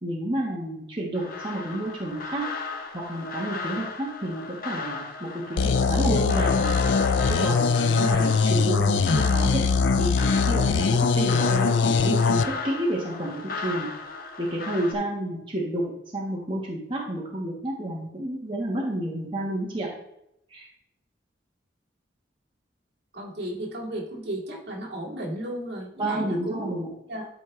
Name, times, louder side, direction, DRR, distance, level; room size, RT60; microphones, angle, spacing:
voice 1, 0.0-2.5 2.9-6.7 7.2-9.6 9.9-13.9 14.4-19.9 20.5-20.7 26.0-26.9, right 1 dB, 30° right, -4 dB, 1.6 m, -30 dB
sound 1, 1.1-14.9, left 4 dB, 50° left, 1.0 m, -36 dB
sound 2, 5.6-12.4, left 4 dB, 85° left, 0.4 m, -22 dB
voice 2, 23.1-26.7 27.1-27.3, right 1 dB, 60° right, -3 dB, 2.3 m, -34 dB
12.5 x 4.4 x 3.3 m, 0.77 s
head